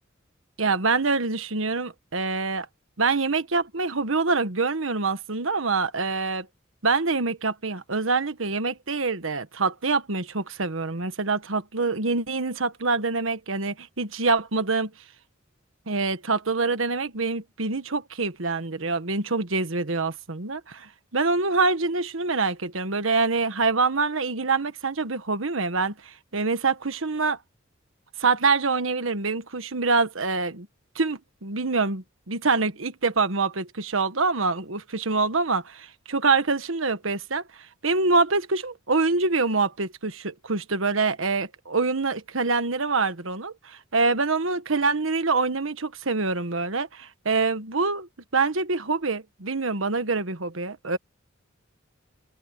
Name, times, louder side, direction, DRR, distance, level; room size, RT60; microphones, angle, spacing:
voice 1, 0.6-2.7 3.0-6.5 6.8-14.9 15.9-27.4 28.2-30.7 30.9-37.4 37.8-51.0, right 4 dB, 80° right, 1.4 m, -25 dB
head